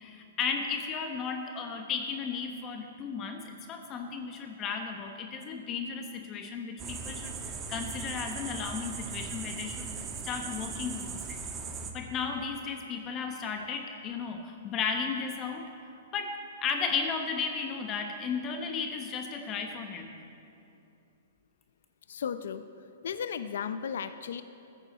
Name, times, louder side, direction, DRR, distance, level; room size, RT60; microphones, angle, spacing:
voice 1, 0.0-11.2 11.9-15.6 16.1-20.1, left 5 dB, 25° left, 4 dB, 1.0 m, -34 dB
sound 1, 6.8-11.9, right 5 dB, 20° right, 1.2 m, -39 dB
voice 2, 22.1-24.4, left 7 dB, 75° left, 11 dB, 0.5 m, -35 dB
20.0 x 9.3 x 4.3 m, 2.7 s
hypercardioid pair, 145°, 0 cm